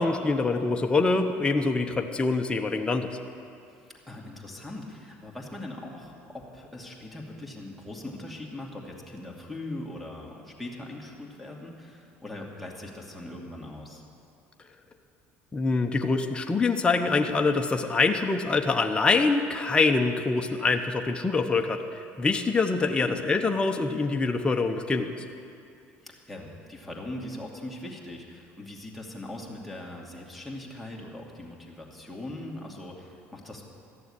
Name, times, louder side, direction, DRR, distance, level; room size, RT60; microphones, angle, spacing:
voice 1, 0.0-3.1 15.5-25.1, left 3 dB, 20° left, 4 dB, 0.9 m, -25 dB
voice 2, 3.7-14.0 22.8-23.2 26.0-33.6, left 1 dB, ahead, -3 dB, 2.4 m, -40 dB
14.0 x 7.0 x 9.9 m, 2.5 s
supercardioid pair, 95°, 5 cm